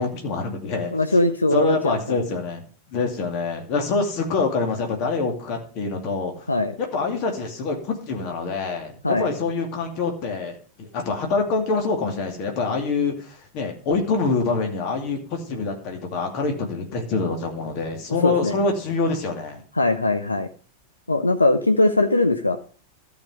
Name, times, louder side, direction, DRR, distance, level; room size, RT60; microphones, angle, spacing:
voice 1, 0.0-0.9 1.5-2.6 2.9-6.5 6.8-19.6, left 4 dB, 40° left, 3 dB, 2.5 m, -25 dB
voice 2, 0.9-2.2 6.5-6.7 9.0-9.3 18.2-18.6 19.7-20.5 21.1-22.6, left 2 dB, 80° left, 7 dB, 0.7 m, -20 dB
13.0 x 5.2 x 6.3 m, 0.42 s
figure-of-eight pair, 90°, 0 cm